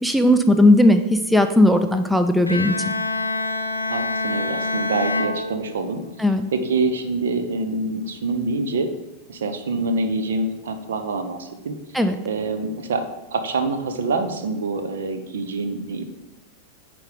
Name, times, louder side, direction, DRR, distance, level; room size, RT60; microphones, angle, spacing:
voice 1, 0.0-2.7 6.2-6.5 11.9-12.2, left 1 dB, ahead, 8 dB, 0.4 m, -17 dB
Bowed string instrument, 2.5-6.2, left 3 dB, 85° left, 0.5 m, -26 dB
voice 2, 3.9-6.0 6.5-8.9 9.3-11.8 12.2-13.0 13.3-16.0, right 3 dB, 65° right, 8 dB, 0.8 m, -25 dB
8.8 x 3.4 x 5.1 m, 1.0 s
figure-of-eight pair, 90°, 0 cm